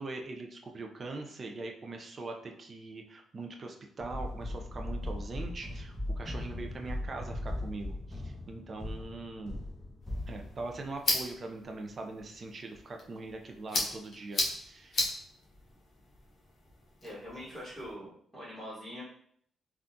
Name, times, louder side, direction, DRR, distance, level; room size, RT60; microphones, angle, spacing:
voice 1, 0.0-9.6 10.3-15.1, right 3 dB, 40° right, 3 dB, 0.5 m, -42 dB
sound 1, 4.0-11.2, left 1 dB, 20° left, 0.9 m, -39 dB
sound 2, 10.0-17.9, left 2 dB, 45° left, 0.9 m, -37 dB
voice 2, 17.0-19.0, equal, 10° right, -12 dB, 1.3 m, -43 dB
3.6 x 2.3 x 2.6 m, 0.63 s
cardioid pair, 85°, 0 cm